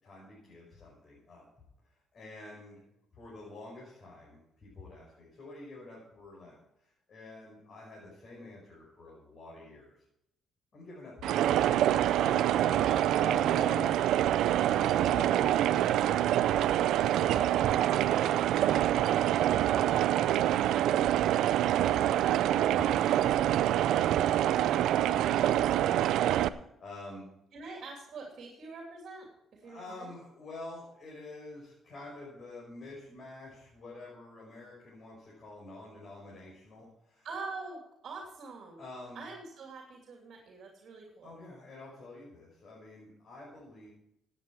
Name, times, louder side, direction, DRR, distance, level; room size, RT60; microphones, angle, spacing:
voice 1, 0.0-1.5 2.1-2.9 3.1-10.0 10.7-11.4 12.2-12.8 13.2-16.7 17.1-17.7 18.6-19.1 19.4-27.3 29.6-37.3 38.8-39.2 41.2-43.9, left 2 dB, 50° left, -5 dB, 5.3 m, -48 dB
sound 1, 11.2-26.5, right 12 dB, 85° right, 0.4 m, -26 dB
voice 2, 17.2-17.7 27.5-29.3 29.5-30.1 37.2-38.8 39.1-41.3, right 3 dB, 55° right, 0 dB, 2.9 m, -44 dB
16.0 x 8.9 x 4.7 m, 0.79 s
cardioid pair, 90°, 0 cm